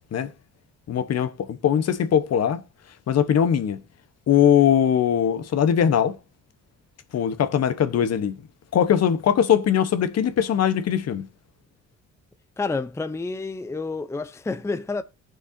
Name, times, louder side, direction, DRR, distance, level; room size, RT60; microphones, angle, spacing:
voice 1, 0.9-2.6 3.1-3.8 4.3-6.2 7.1-8.4 8.7-11.3, left 9 dB, 55° left, 1.0 m, -21 dB
voice 2, 12.6-15.0, left 3 dB, 10° left, 0.5 m, -29 dB
18.5 x 6.3 x 2.6 m
cardioid pair, 90°, 30 cm